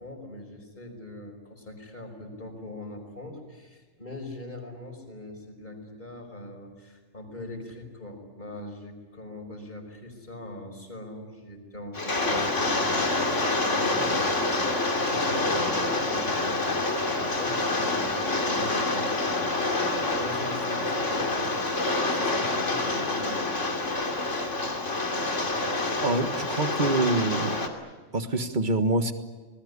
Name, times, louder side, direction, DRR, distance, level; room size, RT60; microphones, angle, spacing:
voice 1, 0.0-13.1 13.4-14.7 15.0-19.3 20.2-23.8, left 1 dB, 40° left, 4 dB, 5.4 m, -42 dB
Rain, 11.9-27.7, left 2 dB, 70° left, 3.1 m, -27 dB
voice 2, 26.0-27.7 28.1-29.1, right 2 dB, 40° right, 7 dB, 1.8 m, -26 dB
27.5 x 20.5 x 9.7 m, 1.3 s
omnidirectional pair, 1.3 m